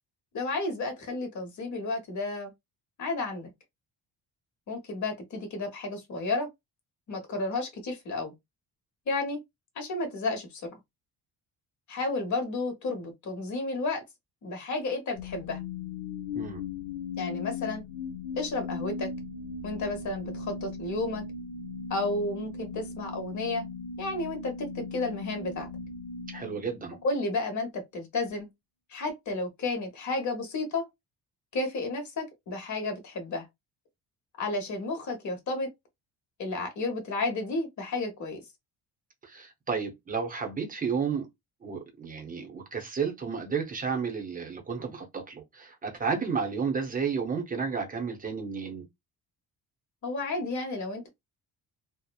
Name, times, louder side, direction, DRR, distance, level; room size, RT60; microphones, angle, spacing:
voice 1, 0.3-2.5 3.0-3.5 4.7-6.5 7.1-8.3 9.1-9.4 9.8-10.7 11.9-14.0 14.4-15.6 17.2-17.8 18.4-19.1 19.6-21.2 21.9-23.6 24.0-25.7 27.0-28.5 28.9-30.9 31.5-33.4 34.4-35.7 36.4-38.4 50.0-51.1, left 2 dB, 45° left, 1.0 m, -32 dB
sound 1, 15.2-27.3, left 4 dB, 80° left, 0.7 m, -38 dB
voice 2, 26.3-27.0 39.2-41.3 41.6-48.8, right 6 dB, 20° right, 0.7 m, -32 dB
2.9 x 2.0 x 2.3 m
cardioid pair, 130°, 40 cm